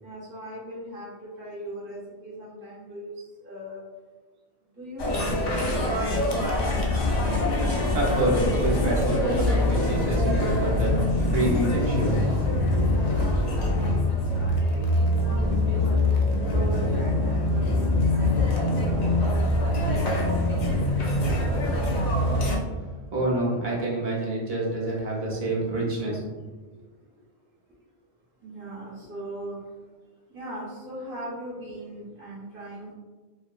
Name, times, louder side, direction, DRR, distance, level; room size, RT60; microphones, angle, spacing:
voice 1, 0.0-3.1 3.4-3.8 4.8-5.2 5.5-5.9 6.2-6.9 12.9-14.8 15.1-16.0 16.5-18.4 18.8-19.5 20.4-21.4 26.2-26.3 28.4-29.6 30.3-32.9, right 1 dB, 15° right, -8 dB, 0.7 m, -39 dB
sound 1, 5.0-22.6, left 1 dB, 55° left, 0.5 m, -24 dB
voice 2, 7.9-11.0 11.3-12.2 23.1-26.2, right 1 dB, 50° right, -5 dB, 0.8 m, -27 dB
2.6 x 2.5 x 2.3 m, 1.3 s
omnidirectional pair, 1.1 m